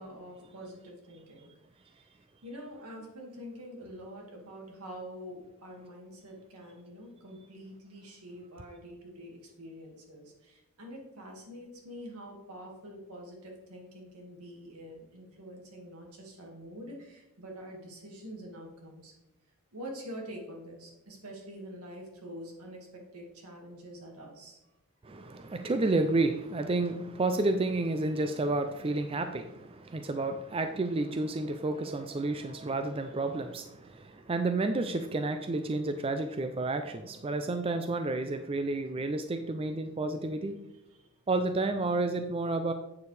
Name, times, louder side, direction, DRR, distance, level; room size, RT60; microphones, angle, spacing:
voice 1, 0.0-1.5 1.9-2.1 2.4-19.1 19.7-22.8 23.1-24.6 40.9-41.1, equal, 85° right, 0 dB, 2.0 m, -46 dB
voice 2, 25.0-40.6 41.3-42.7, right 2 dB, 25° right, 7 dB, 0.4 m, -30 dB
8.2 x 7.0 x 3.3 m, 0.92 s
head